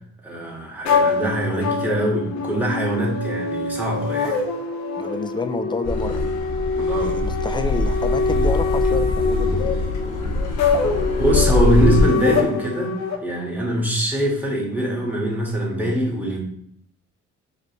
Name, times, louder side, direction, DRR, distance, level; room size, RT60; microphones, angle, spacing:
voice 1, 0.2-4.4 6.8-7.2 11.2-16.4, equal, 5° right, -3 dB, 1.6 m, -23 dB
sound 1, 0.8-13.2, left 4 dB, 65° left, 0.9 m, -24 dB
voice 2, 5.0-6.3 7.0-9.8, left 3 dB, 15° left, 8 dB, 0.4 m, -29 dB
Car passing by / Accelerating revving vroom, 5.8-12.0, left 2 dB, 90° left, 1.1 m, -23 dB
5.1 x 3.1 x 3.0 m, 0.67 s
cardioid pair, 90°, 30 cm